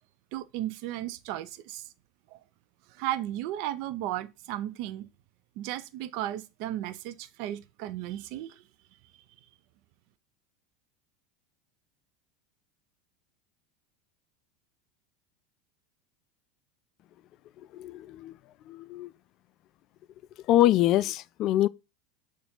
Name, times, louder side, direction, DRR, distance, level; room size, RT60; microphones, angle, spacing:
voice 1, 0.3-1.8 2.3-2.4 3.0-5.1 5.6-8.6, right 13 dB, 60° right, 0.5 m, -35 dB
voice 2, 17.7-18.3 18.7-19.1 20.5-21.7, left 14 dB, 50° left, 0.3 m, -24 dB
6.9 x 2.6 x 5.5 m
hypercardioid pair, 85°, 0 cm